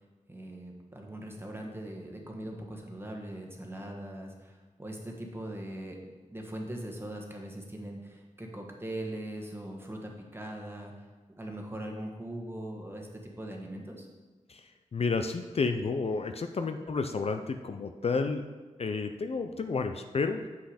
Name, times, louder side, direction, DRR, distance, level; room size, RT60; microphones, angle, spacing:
voice 1, 0.3-6.0 6.3-10.9 11.3-14.1, right 1 dB, 15° right, 1 dB, 1.4 m, -40 dB
voice 2, 14.5-18.5 18.8-20.5, left 4 dB, 50° left, 7 dB, 0.5 m, -31 dB
7.8 x 5.6 x 5.0 m, 1.3 s
wide cardioid pair, 80°, 13 cm